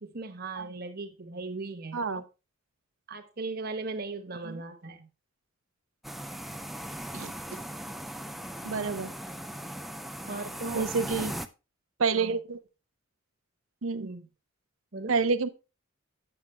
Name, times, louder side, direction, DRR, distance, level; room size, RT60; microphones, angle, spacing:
voice 1, 0.0-2.2 3.1-5.1 10.2-10.9 12.1-12.4 14.0-14.3 14.9-15.2, right 3 dB, 50° right, 1.3 m, -38 dB
sound 1, 6.0-11.5, equal, ahead, 0.5 m, -38 dB
voice 2, 8.6-9.1 10.7-11.3 12.0-12.6 13.8-14.1 15.1-15.5, right 4 dB, 80° right, 0.7 m, -28 dB
9.1 x 7.2 x 3.3 m
head